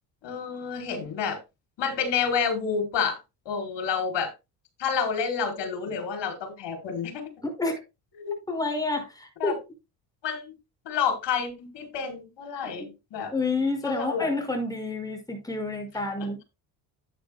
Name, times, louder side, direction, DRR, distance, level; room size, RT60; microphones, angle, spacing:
voice 1, 0.2-1.4 1.8-3.2 3.4-4.3 4.8-7.3 8.2-8.3 9.4-9.5 10.2-10.6 10.8-13.3 13.8-14.3, left 6 dB, 60° left, 4.5 m, -29 dB
voice 2, 7.4-7.8 8.5-9.6 12.8-12.9 13.3-16.4, left 2 dB, 10° left, 5.7 m, -29 dB
11.0 x 9.6 x 2.3 m
supercardioid pair, 65°, 47 cm